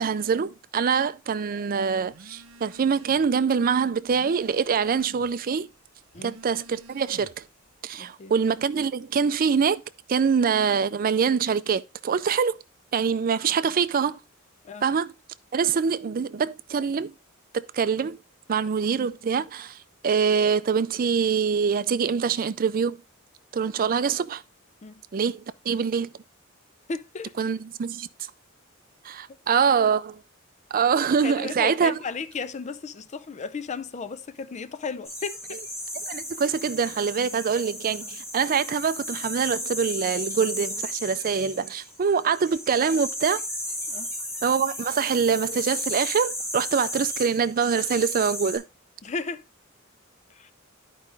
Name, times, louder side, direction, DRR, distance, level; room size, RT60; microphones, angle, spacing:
voice 1, 0.0-5.7 6.2-7.4 7.8-9.8 10.1-12.6 12.9-14.2 14.8-15.1 15.5-17.1 17.5-18.2 18.5-19.8 20.0-23.0 23.5-24.4 25.1-26.1 27.4-28.1 29.0-30.2 30.7-31.9 36.1-43.4 44.4-48.6, right 6 dB, 45° right, 0.4 m, -24 dB
Telephone, 2.1-3.3 3.7-5.4 6.0-7.5, right 2 dB, 90° right, 0.8 m, -50 dB
voice 2, 7.9-8.3 14.6-14.9 24.8-25.0 26.9-27.4 31.2-35.6 43.9-44.1 49.0-49.4 50.3-50.5, left 4 dB, 35° left, 0.4 m, -34 dB
sound 1, 35.0-48.6, left 1 dB, 15° left, 4.1 m, -34 dB
11.0 x 5.0 x 3.4 m
head